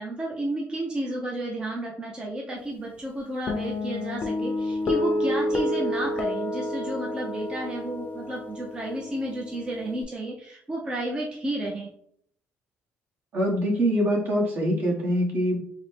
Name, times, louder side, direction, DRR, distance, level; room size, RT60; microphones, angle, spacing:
voice 1, 0.0-11.9, right 1 dB, 20° right, -2 dB, 0.6 m, -32 dB
Guitar, 3.5-10.0, left 1 dB, 40° left, 0.6 m, -29 dB
voice 2, 13.3-15.6, equal, 50° right, -3 dB, 1.3 m, -24 dB
4.0 x 2.1 x 3.3 m, 0.65 s
cardioid pair, 140°, 5 cm